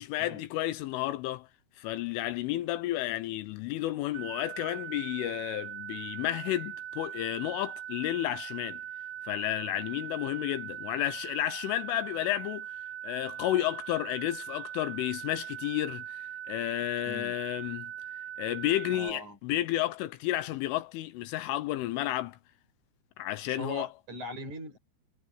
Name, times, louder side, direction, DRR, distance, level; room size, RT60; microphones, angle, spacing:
voice 1, 0.0-1.5 1.8-8.8 9.2-12.8 13.0-17.9 18.4-22.4 23.2-23.9, left 15 dB, 80° left, 3.3 m, -32 dB
sound 1, 4.1-19.1, right 10 dB, 65° right, 3.4 m, -41 dB
voice 2, 18.9-19.4 23.4-24.8, right 1 dB, 35° right, 7.5 m, -41 dB
omnidirectional pair, 5.8 m